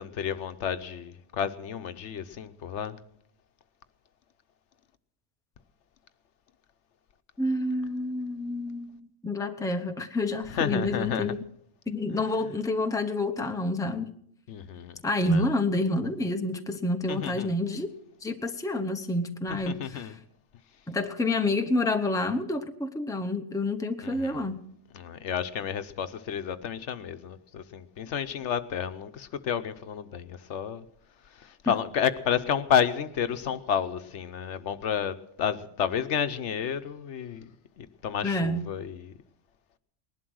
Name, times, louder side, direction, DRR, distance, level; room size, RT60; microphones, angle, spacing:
voice 1, 0.0-2.9 10.5-11.3 14.5-15.4 17.1-17.6 19.5-20.1 24.0-24.5 24.9-30.8 31.3-37.5 37.8-39.1, left 8 dB, 75° left, 1.1 m, -31 dB
voice 2, 7.4-11.4 11.9-14.1 15.0-17.9 18.2-20.2 20.9-24.6 31.7-31.8 38.2-38.7, left 2 dB, 5° left, 0.8 m, -28 dB
19.5 x 11.5 x 6.3 m
omnidirectional pair, 1.2 m